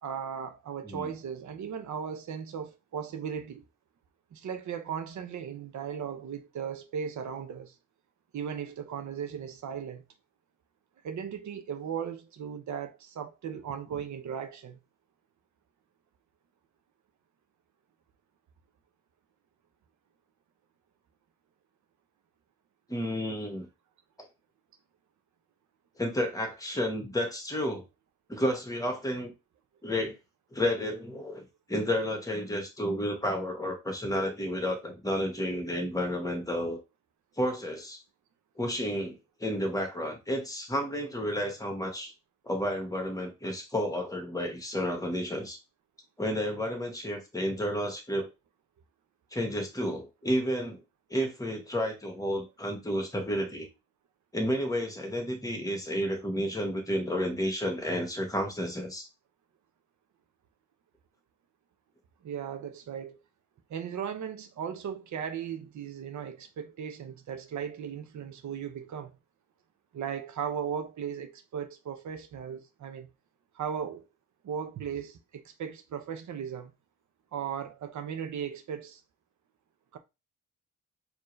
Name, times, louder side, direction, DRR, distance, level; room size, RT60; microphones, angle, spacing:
voice 1, 0.0-3.6 4.3-7.7 8.3-10.0 11.0-14.8 62.2-63.2 63.7-69.1 69.9-73.1 73.6-74.0 74.4-76.7 77.3-79.0 79.9-80.0, right 7 dB, 65° right, 0.9 m, -37 dB
voice 2, 22.9-23.7 26.0-27.8 28.3-29.3 29.8-30.1 30.5-31.4 31.7-36.8 37.4-38.0 38.6-42.1 42.4-45.6 46.2-48.3 49.3-50.8 51.1-53.7 54.3-59.1, equal, 10° left, 1.6 m, -31 dB
4.5 x 3.1 x 3.2 m
cardioid pair, 90°, 31 cm